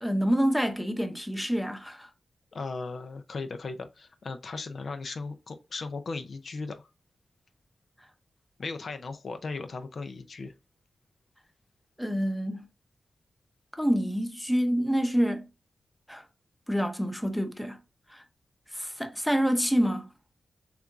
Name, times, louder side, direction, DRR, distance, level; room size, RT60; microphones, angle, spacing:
voice 1, 0.0-2.1 12.0-12.7 13.7-15.5 16.1-16.2 16.7-17.8 18.1-18.2 18.7-20.1, equal, ahead, 0.7 m, -27 dB
voice 2, 2.5-6.9 8.6-10.5, left 3 dB, 60° left, 0.5 m, -37 dB
6.7 x 2.4 x 2.4 m
wide cardioid pair, 85°, 0 cm